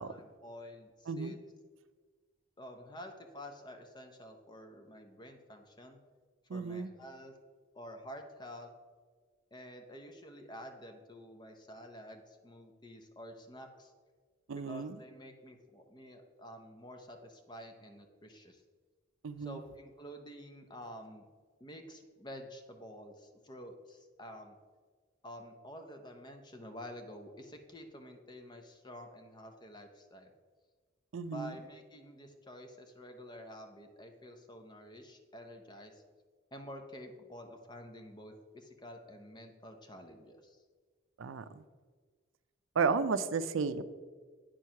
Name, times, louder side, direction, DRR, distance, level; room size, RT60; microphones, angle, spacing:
voice 1, 0.0-1.4 2.6-6.0 6.5-7.3 7.7-8.7 9.5-13.9 14.5-18.6 19.4-21.3 21.6-24.6 25.2-30.3 31.3-36.0 36.5-40.6, equal, 20° left, 5 dB, 0.8 m, -49 dB
voice 2, 6.5-6.9 14.5-15.0 19.2-19.6 31.1-31.5 41.2-41.6 42.8-43.8, right 5 dB, 85° right, 13 dB, 0.4 m, -33 dB
9.0 x 4.7 x 5.7 m, 1.5 s
head